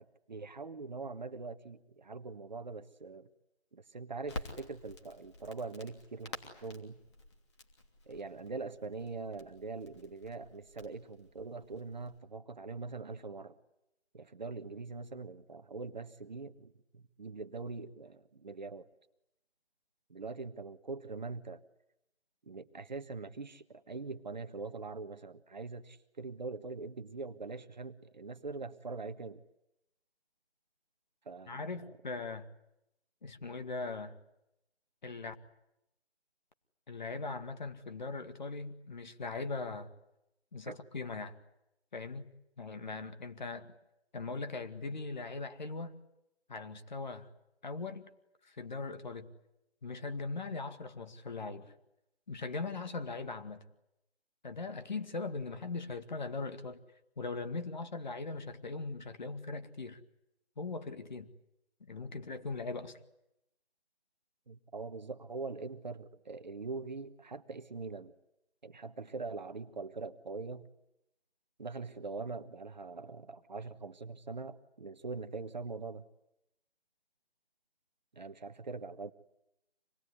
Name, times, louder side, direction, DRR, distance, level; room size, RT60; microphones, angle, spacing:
voice 1, 0.0-3.3 3.7-7.0 8.1-13.5 14.1-18.9 20.1-21.6 22.5-29.4 31.2-31.7 40.7-40.8 64.5-68.1 68.6-70.7 71.6-76.0 78.1-79.1, right 4 dB, 40° right, 9 dB, 1.3 m, -43 dB
Crackle, 4.2-12.2, left 2 dB, 25° left, 2.9 m, -50 dB
voice 2, 31.5-32.5 33.2-34.2 35.0-35.3 36.9-39.9 40.5-41.4 41.9-42.3 42.6-43.7 44.1-45.9 46.5-47.3 47.6-48.1 48.4-49.3 49.8-51.7 52.3-53.6 54.4-56.8 57.2-60.0 60.6-61.3 61.8-63.0, left 3 dB, 40° left, 8 dB, 2.1 m, -40 dB
26.5 x 20.5 x 9.8 m, 0.84 s
figure-of-eight pair, 165°, 33 cm